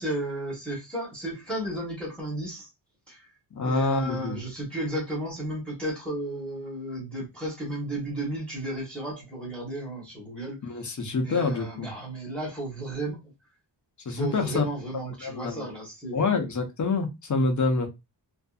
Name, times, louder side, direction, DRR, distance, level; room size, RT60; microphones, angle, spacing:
voice 1, 0.0-2.7 3.1-3.3 3.6-10.9 11.2-13.2 14.2-16.5, right 1 dB, ahead, 1.1 m, -34 dB
voice 2, 3.6-4.4 10.6-11.9 14.1-14.6 15.2-15.7 16.1-17.9, left 3 dB, 45° left, 0.7 m, -26 dB
2.6 x 2.5 x 2.3 m
wide cardioid pair, 155°, 42 cm